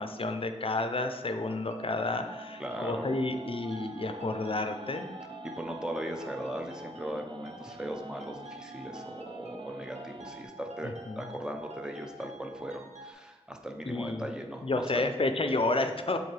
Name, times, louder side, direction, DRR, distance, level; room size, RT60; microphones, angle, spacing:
voice 1, 0.0-5.1 10.8-11.2 13.9-14.3 14.6-16.2, left 2 dB, 50° left, 7 dB, 0.5 m, -31 dB
sound 1, 1.4-13.1, right 2 dB, 80° right, 0.9 m, -49 dB
sound 2, 2.0-10.5, right 2 dB, 45° right, 0.4 m, -47 dB
voice 2, 2.6-3.2 5.4-15.1, equal, 5° right, 3 dB, 0.7 m, -38 dB
7.0 x 4.0 x 3.3 m, 1.2 s
wide cardioid pair, 60°, 12 cm